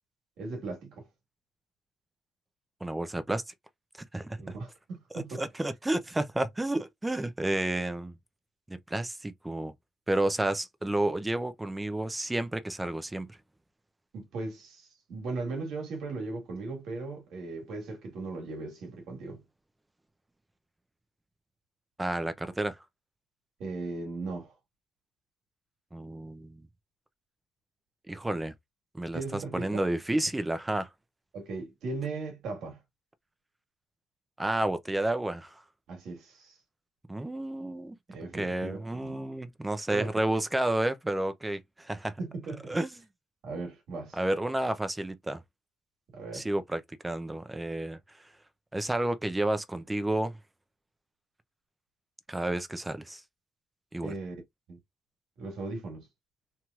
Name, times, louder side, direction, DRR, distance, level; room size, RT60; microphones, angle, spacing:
voice 1, 0.4-1.1 4.4-5.4 14.1-19.4 23.6-24.5 29.1-29.8 31.3-32.8 35.9-36.6 38.1-39.2 39.9-40.2 42.2-42.8 43.4-44.2 46.1-46.5 54.0-54.3 54.7-54.8 55.4-56.1, right 3 dB, 80° right, 1.5 m, -38 dB
voice 2, 2.8-3.4 4.1-4.4 5.4-8.1 8.7-9.7 10.1-13.3 22.0-22.8 25.9-26.6 28.1-28.5 28.9-30.9 34.4-35.5 37.1-37.9 38.3-42.1 42.7-42.9 44.1-45.4 46.3-48.0 48.7-50.4 52.3-53.2 53.9-54.1, right 1 dB, 15° right, 0.5 m, -31 dB
3.0 x 2.8 x 2.3 m
cardioid pair, 90°, 0 cm